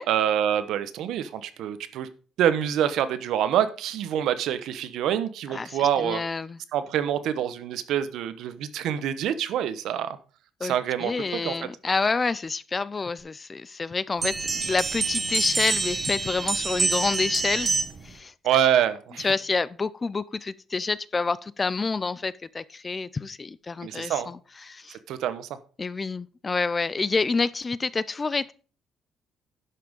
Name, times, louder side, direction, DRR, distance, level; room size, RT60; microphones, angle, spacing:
voice 1, 0.1-2.1 2.4-6.2 6.7-10.2 10.6-11.5 18.4-19.3 23.8-24.3 25.1-25.5, right 10 dB, 75° right, 1.0 m, -26 dB
voice 2, 5.5-6.6 10.6-17.8 18.0-18.3 19.2-25.0 25.8-28.5, left 4 dB, 20° left, 0.4 m, -28 dB
sound 1, 14.2-18.1, right 4 dB, 25° right, 1.2 m, -27 dB
11.0 x 6.0 x 5.2 m
cardioid pair, 150°, 0 cm